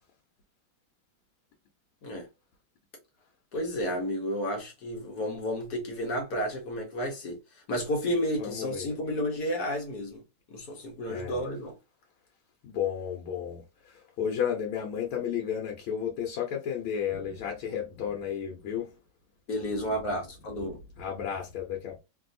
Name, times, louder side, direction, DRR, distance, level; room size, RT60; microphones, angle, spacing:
voice 1, 3.5-7.4 7.7-10.2 10.5-11.7 19.5-20.8, equal, 55° left, 1.4 m, -31 dB
voice 2, 8.4-9.0 11.1-11.4 12.6-18.9 20.6-22.0, left 8 dB, 85° left, 1.6 m, -33 dB
3.5 x 2.6 x 2.6 m
omnidirectional pair, 2.2 m